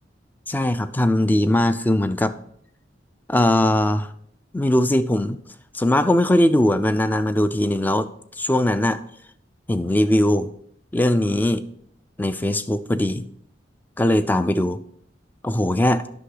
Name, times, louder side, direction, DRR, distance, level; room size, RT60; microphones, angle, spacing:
voice 1, 0.5-2.3 3.3-4.1 4.5-5.4 5.7-8.1 8.4-9.0 9.7-10.5 10.9-11.6 12.2-13.2 14.0-14.8 15.4-16.0, left 1 dB, 10° left, 12 dB, 0.3 m, -20 dB
8.4 x 6.0 x 3.9 m, 0.68 s
head